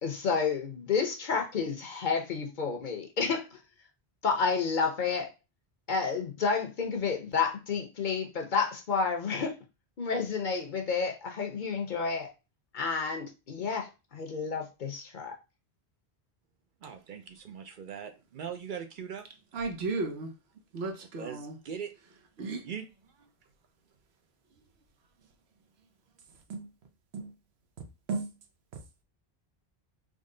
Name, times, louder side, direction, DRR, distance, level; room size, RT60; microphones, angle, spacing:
voice 1, 0.0-3.6 4.2-5.3 5.9-9.5 10.0-12.3 12.7-15.3, left 5 dB, 55° left, 0.8 m, -30 dB
voice 2, 16.8-19.3 21.0-21.9 22.6-22.8, right 7 dB, 60° right, 0.6 m, -40 dB
voice 3, 19.5-20.3 20.7-21.5 22.4-22.6 26.5-26.7 27.1-27.3 28.1-28.3, right 3 dB, 90° right, 1.0 m, -34 dB
3.7 x 2.1 x 3.7 m
omnidirectional pair, 1.0 m